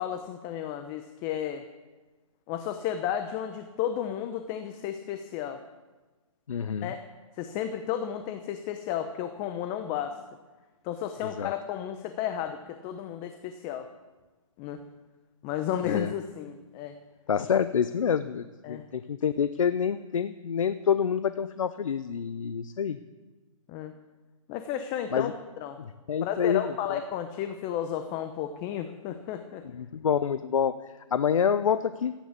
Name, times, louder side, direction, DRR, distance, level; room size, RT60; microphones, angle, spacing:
voice 1, 0.0-1.7 2.5-5.6 6.8-7.0 7.4-10.2 10.8-13.9 14.6-14.8 15.4-16.9 18.6-18.8 23.7-23.9 24.5-25.8 26.2-29.6, left 10 dB, 25° left, 7 dB, 0.9 m, -33 dB
voice 2, 6.5-6.9 11.2-11.5 15.8-16.1 17.3-23.0 25.1-25.3 25.8-26.7 29.7-30.8 31.1-32.1, left 7 dB, 75° left, 12 dB, 0.7 m, -27 dB
15.0 x 9.3 x 8.3 m, 1.3 s
hypercardioid pair, 140°, 17 cm